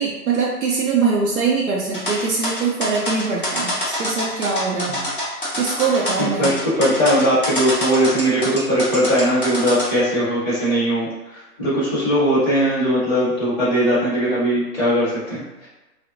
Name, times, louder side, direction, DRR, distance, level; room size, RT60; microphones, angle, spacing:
voice 1, 0.0-5.0 5.6-6.5, right 5 dB, 60° right, -4 dB, 0.5 m, -22 dB
sound 1, 1.9-9.9, left 1 dB, 35° left, 0.5 m, -26 dB
voice 2, 6.2-15.7, equal, 5° left, -12 dB, 1.1 m, -20 dB
2.5 x 2.0 x 2.6 m, 1.1 s
hypercardioid pair, 170°, 48 cm